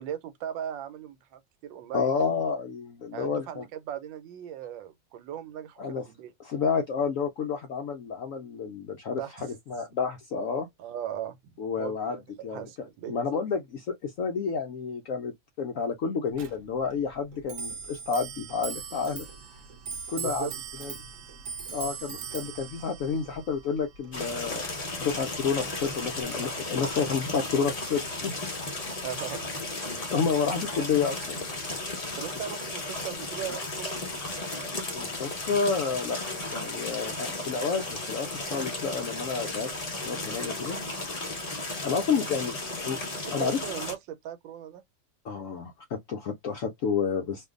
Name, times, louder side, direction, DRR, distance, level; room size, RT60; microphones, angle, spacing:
voice 1, 0.0-2.2 3.1-6.3 9.1-9.5 10.8-12.2 12.5-13.2 20.2-20.5 29.0-29.6 32.2-34.1 43.1-44.8, right 10 dB, 90° right, 1.4 m, -38 dB
voice 2, 1.9-3.6 5.8-6.0 6.4-10.7 11.6-12.7 13.1-15.3 15.6-19.3 20.1-20.5 20.8-20.9 21.7-24.7 25.0-28.4 30.1-31.4 34.9-36.2 36.5-39.7 40.0-40.8 41.8-42.6 42.8-43.0 43.3-43.6 45.2-47.5, left 5 dB, 70° left, 0.7 m, -30 dB
Clock, 16.3-26.2, right 6 dB, 60° right, 0.8 m, -41 dB
sound 1, 24.1-43.9, left 2 dB, 50° left, 0.4 m, -34 dB
2.8 x 2.5 x 3.6 m
omnidirectional pair, 2.0 m